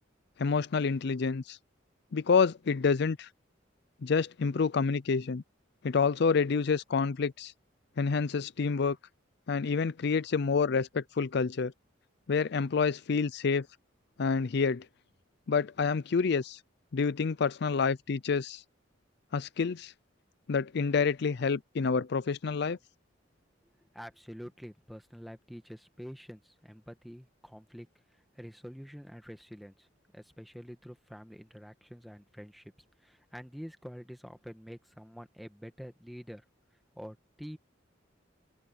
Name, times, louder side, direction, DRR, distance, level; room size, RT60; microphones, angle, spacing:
voice 1, 0.4-1.6 2.1-3.3 4.0-5.4 5.8-7.5 8.0-9.0 9.5-11.7 12.3-13.7 14.2-14.9 15.5-16.6 16.9-18.6 19.3-19.9 20.5-22.8, left 5 dB, 60° left, 0.5 m, -28 dB
voice 2, 23.9-27.9 28.3-29.9 30.1-32.7 33.0-36.4 36.9-37.6, equal, ahead, 1.5 m, -47 dB
open air
head